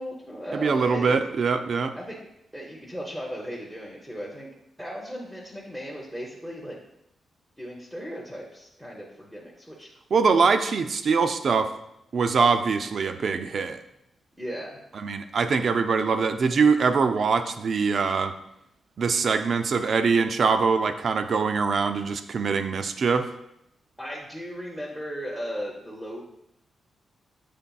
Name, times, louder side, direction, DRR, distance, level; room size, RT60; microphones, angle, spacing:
voice 1, 0.0-1.1 2.0-2.2 2.5-4.5 4.8-6.8 7.6-9.9 14.4-14.8 24.0-26.2, equal, ahead, -3 dB, 0.6 m, -36 dB
voice 2, 0.5-1.9 10.1-11.7 12.1-13.8 15.0-18.3 19.0-23.3, right 5 dB, 50° right, 9 dB, 0.3 m, -23 dB
6.8 x 3.2 x 2.3 m, 0.80 s
wide cardioid pair, 140°, 0 cm